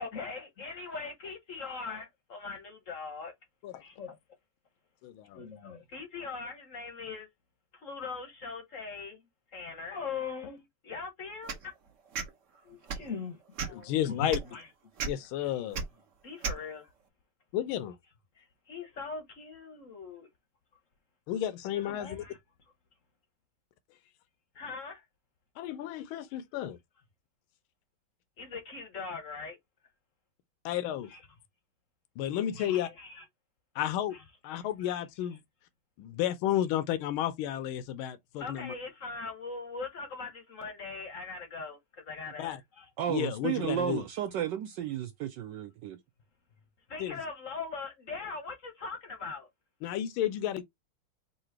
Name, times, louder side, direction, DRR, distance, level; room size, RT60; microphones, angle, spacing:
voice 1, 0.0-3.3 3.8-4.2 5.3-7.3 7.7-9.2 9.5-11.7 12.6-13.4 13.7-14.7 16.2-16.9 18.4-20.3 21.7-22.4 24.5-25.0 28.4-29.6 31.1-31.2 32.5-33.2 34.1-34.2 34.8-35.0 38.4-42.9 46.9-49.5, left 4 dB, 55° left, 0.9 m, -41 dB
voice 2, 5.0-5.5 13.7-14.4 15.0-15.8 17.5-18.0 21.3-22.2 25.6-26.8 30.6-31.1 32.2-32.9 33.7-34.2 34.4-35.4 36.0-38.7 42.4-42.6 43.1-44.0 47.0-47.2 49.8-50.6, left 11 dB, 85° left, 1.4 m, -32 dB
sound 1, 11.5-11.7 12.1-12.3 12.8-13.1 13.6-13.8 14.3-14.4 15.0-15.1 15.7-15.8 16.4-16.6, right 5 dB, 50° right, 0.9 m, -33 dB
voice 3, 43.0-46.0, right 10 dB, 75° right, 1.1 m, -33 dB
3.8 x 2.7 x 4.4 m
omnidirectional pair, 2.2 m